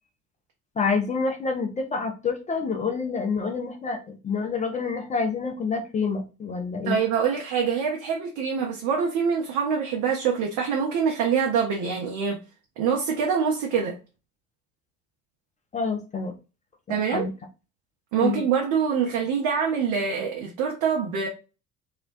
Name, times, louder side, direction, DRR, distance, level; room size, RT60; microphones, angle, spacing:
voice 1, 0.8-7.0 15.7-16.3 16.9-17.3 18.2-18.4, left 4 dB, 20° left, 0.4 m, -27 dB
voice 2, 6.8-12.4 12.8-14.0 16.9-17.2 18.1-21.3, right 6 dB, 50° right, 0.6 m, -25 dB
2.3 x 2.1 x 2.5 m
figure-of-eight pair, 55°, 44 cm